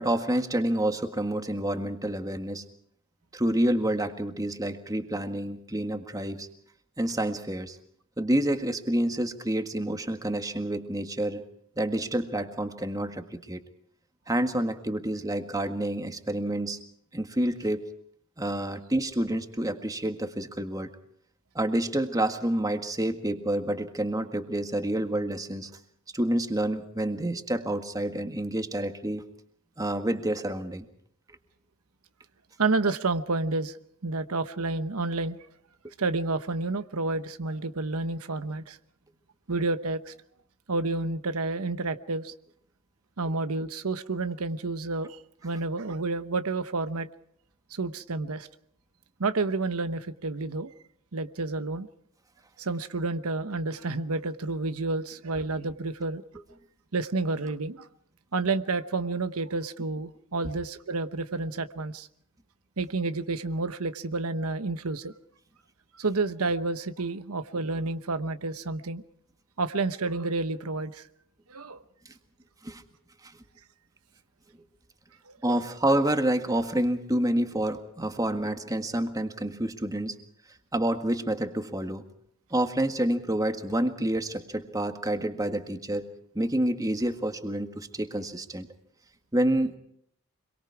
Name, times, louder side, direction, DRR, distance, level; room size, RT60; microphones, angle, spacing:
voice 1, 0.0-2.6 3.3-6.5 7.0-7.8 8.2-11.4 11.8-13.6 14.3-16.8 17.1-17.8 18.4-20.9 21.6-25.7 26.1-29.2 29.8-30.9 72.6-72.8 73.2-73.3 75.4-80.2 80.7-82.0 82.5-86.1 86.4-88.7 89.3-89.8, right 1 dB, 15° right, 7 dB, 1.7 m, -28 dB
voice 2, 32.6-33.8 34.0-35.4 36.0-38.8 39.5-40.1 40.7-42.3 43.2-47.1 47.7-48.5 49.2-50.7 51.1-51.9 52.6-56.2 56.9-57.9 58.3-62.1 62.8-65.1 65.9-69.0 69.6-71.1 71.5-71.8 75.3-75.4, right 3 dB, 80° right, 11 dB, 1.0 m, -30 dB
26.0 x 23.0 x 4.8 m, 0.68 s
head